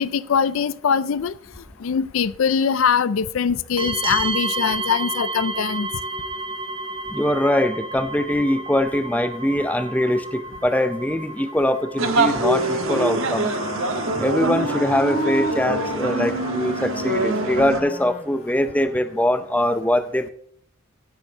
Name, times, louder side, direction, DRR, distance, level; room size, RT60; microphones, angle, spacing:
voice 1, 0.0-1.3 1.8-5.9, left 6 dB, 75° left, 0.4 m, -22 dB
sound 1, 3.8-18.1, right 3 dB, 25° right, 1.1 m, -33 dB
voice 2, 7.1-13.5 14.2-20.3, left 1 dB, 5° left, 0.5 m, -22 dB
Wind instrument woodwind instrument, 11.9-19.3, left 1 dB, 35° left, 1.6 m, -33 dB
sound 2, 12.0-17.8, right 3 dB, 75° right, 1.3 m, -24 dB
10.5 x 8.8 x 3.9 m
head